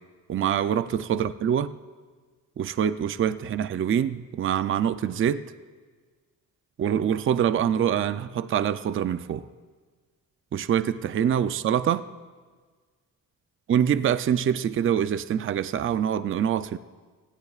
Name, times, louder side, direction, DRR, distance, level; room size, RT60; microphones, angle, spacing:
voice 1, 0.3-1.7 2.6-5.4 6.8-9.4 10.5-12.0 13.7-16.8, right 9 dB, 35° right, 13 dB, 0.4 m, -25 dB
30.0 x 19.0 x 2.4 m, 1.5 s
cardioid pair, 145°, 35 cm